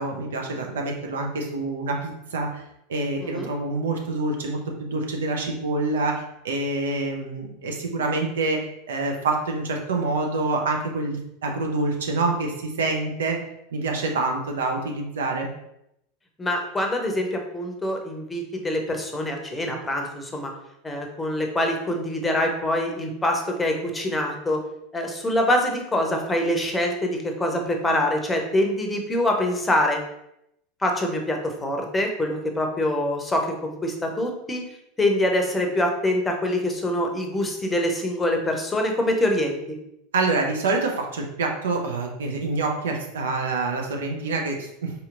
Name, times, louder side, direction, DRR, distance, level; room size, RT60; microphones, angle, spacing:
voice 1, 0.0-2.6 2.9-13.4 13.7-15.5 40.1-44.9, right 3 dB, 75° right, 2 dB, 0.6 m, -26 dB
voice 2, 16.4-20.5 20.8-24.6 24.9-30.0 30.8-34.6 35.0-39.8, left 1 dB, 15° left, 3 dB, 0.7 m, -25 dB
4.1 x 2.8 x 2.5 m, 0.80 s
hypercardioid pair, 85°, 0 cm